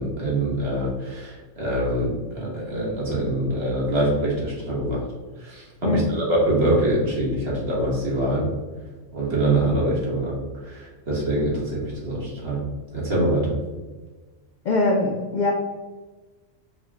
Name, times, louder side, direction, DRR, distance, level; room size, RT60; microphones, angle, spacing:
voice 1, 0.0-5.0 5.4-8.5 9.1-10.4 10.7-12.6 12.9-13.6, right 1 dB, 55° right, -5 dB, 1.5 m, -24 dB
voice 2, 14.6-15.5, left 2 dB, 65° left, -1 dB, 0.4 m, -22 dB
4.8 x 2.2 x 3.5 m, 1.3 s
omnidirectional pair, 1.3 m